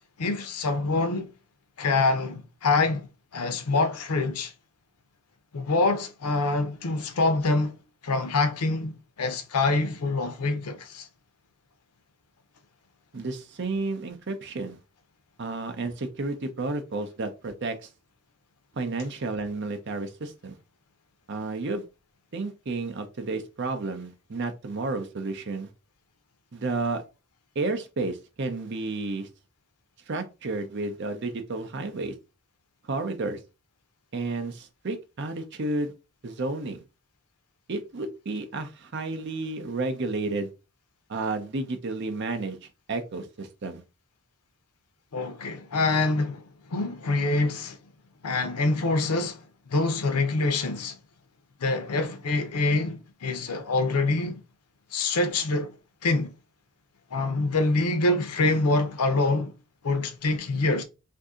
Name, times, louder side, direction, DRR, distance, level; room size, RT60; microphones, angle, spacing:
voice 1, 0.2-1.3 1.8-4.5 5.5-7.8 8.0-11.1 45.1-46.4 46.7-47.8 48.2-51.0 51.6-54.4 54.9-55.7 56.0-56.3 57.1-59.5 59.8-60.8, left 3 dB, 90° left, 0.6 m, -25 dB
voice 2, 13.1-14.8 15.4-17.9 18.7-20.6 21.3-21.8 22.3-25.7 26.5-27.0 27.6-29.3 30.1-32.1 32.8-33.4 34.1-35.9 36.2-36.8 37.7-40.5 41.1-42.6 42.9-43.8, right 3 dB, 50° right, 0.6 m, -31 dB
2.6 x 2.6 x 3.6 m
head